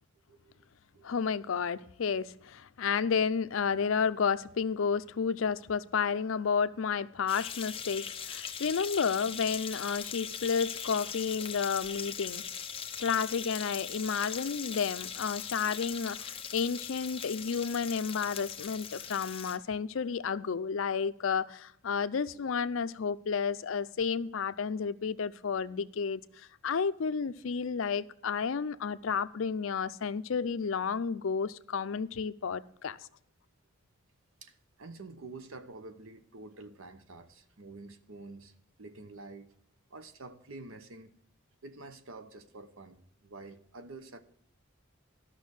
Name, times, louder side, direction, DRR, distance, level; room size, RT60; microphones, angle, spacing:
voice 1, 0.3-0.7 0.9-1.1 15.6-15.8 34.4-38.5 38.8-39.5 39.9-41.1 41.6-44.2, right 3 dB, 80° right, 1.0 m, -48 dB
voice 2, 1.0-12.4 13.0-33.0, left 6 dB, 70° left, 0.5 m, -31 dB
sound 1, 7.3-19.6, left 7 dB, 25° left, 0.8 m, -40 dB
13.0 x 6.0 x 6.4 m
head